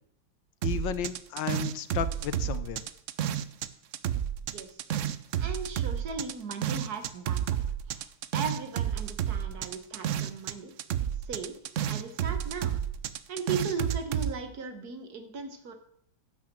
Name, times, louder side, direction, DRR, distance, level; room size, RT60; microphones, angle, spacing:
voice 1, 0.6-2.8, left 10 dB, 75° left, 13 dB, 1.4 m, -33 dB
sound 1, 0.6-3.7 3.9-10.5 10.8-14.3, right 10 dB, 85° right, 0.6 m, -31 dB
voice 2, 5.4-7.6 7.9-10.7 11.2-11.6 11.9-12.8 13.3-15.7, right 4 dB, 55° right, 7 dB, 1.7 m, -37 dB
10.5 x 6.1 x 7.5 m, 0.71 s
omnidirectional pair, 2.0 m